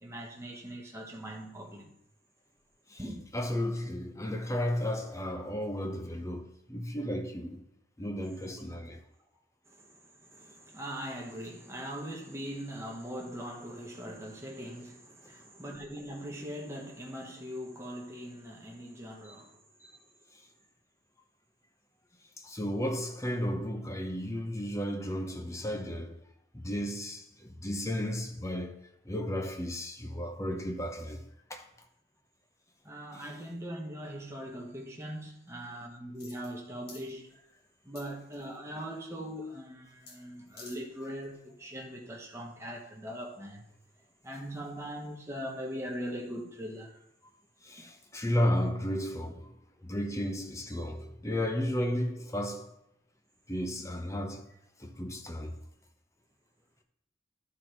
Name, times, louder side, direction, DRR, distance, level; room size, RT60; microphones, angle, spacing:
voice 1, 0.0-1.9 3.0-3.2 9.7-19.6 32.8-37.3 37.8-43.7 44.2-47.0 47.8-47.9, equal, 15° right, 1.2 m, -41 dB
voice 2, 3.3-7.6 8.0-9.0 19.8-19.9 22.4-26.2 26.5-31.2 31.5-31.7 47.6-49.5 49.8-52.7 53.5-54.5 54.8-55.6, equal, 15° left, 0.8 m, -33 dB
sound 1, 36.1-36.6 36.9-37.1 38.0-38.6 40.1-40.2 40.5-40.8 41.2-41.3, left 4 dB, 55° left, 1.6 m, -50 dB
12.0 x 4.0 x 4.6 m
head